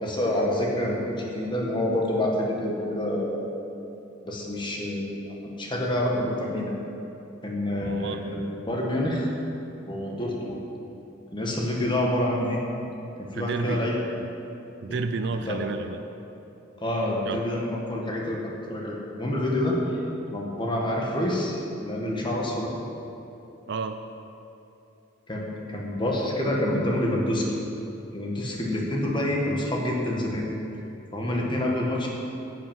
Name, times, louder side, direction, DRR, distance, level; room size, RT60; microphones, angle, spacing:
voice 1, 0.0-3.4 4.2-6.7 7.4-8.4 8.7-9.3 9.9-10.6 11.3-12.6 13.2-14.0 14.9-15.0 15.3-15.6 16.8-20.0 20.3-22.8 25.3-27.4 28.1-30.5 31.1-32.1, left 1 dB, 25° left, -2 dB, 1.7 m, -27 dB
voice 2, 7.8-8.2 13.3-13.9 14.2-14.3 14.8-16.0 17.3-17.4 23.7-24.0, right 4 dB, 60° right, 8 dB, 0.4 m, -31 dB
10.0 x 8.0 x 7.4 m, 2.9 s
head